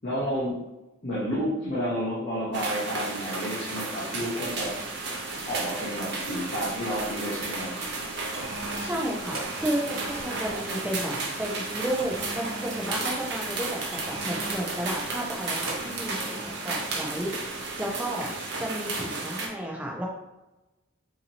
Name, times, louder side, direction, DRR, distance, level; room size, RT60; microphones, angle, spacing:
voice 1, 0.0-0.6 1.0-4.8 5.5-7.8, equal, 45° left, -7 dB, 0.8 m, -30 dB
sound 1, 2.5-19.5, right 3 dB, 55° right, 0.6 m, -33 dB
sound 2, 4.6-4.8 5.4-5.7 6.0-7.1 7.8-10.7 12.0-13.0 13.9-14.6 15.7-17.0 17.3-17.6, right 2 dB, 75° right, 1.2 m, -39 dB
voice 2, 8.8-17.3 17.8-18.3 18.6-20.1, right 1 dB, 5° right, -2 dB, 0.5 m, -32 dB
4.0 x 2.8 x 2.7 m, 1.0 s
head